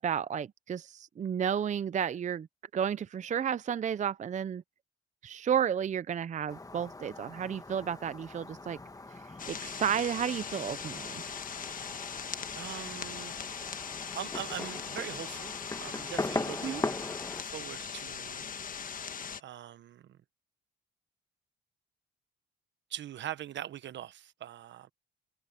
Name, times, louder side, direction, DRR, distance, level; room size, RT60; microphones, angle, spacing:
voice 1, 0.0-2.5 2.7-4.6 5.2-8.8 9.5-11.2 16.6-16.8, right 8 dB, 40° right, 0.5 m, -32 dB
Fireworks, 6.5-17.4, left 2 dB, 15° left, 1.8 m, -40 dB
sound 1, 9.4-19.4, left 7 dB, 45° left, 1.4 m, -40 dB
voice 2, 12.5-13.4 14.1-15.5 15.8-17.0 17.3-18.5 19.0-20.2 22.9-24.9, right 11 dB, 65° right, 1.0 m, -42 dB
cardioid pair, 90°, 20 cm